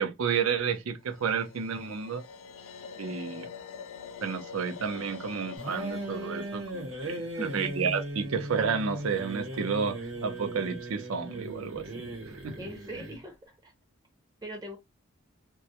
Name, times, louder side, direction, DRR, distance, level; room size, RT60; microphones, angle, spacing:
voice 1, 0.0-2.2 3.0-3.5 4.2-7.3 7.5-12.1 12.4-12.6, right 6 dB, 85° right, 0.5 m, -31 dB
sound 1, 1.1-8.2, left 6 dB, 75° left, 0.4 m, -45 dB
sound 2, 5.6-13.2, right 1 dB, 60° right, 0.9 m, -38 dB
voice 2, 7.1-7.8 12.6-13.7 14.4-14.8, equal, 20° right, 0.5 m, -41 dB
2.2 x 2.0 x 2.8 m
head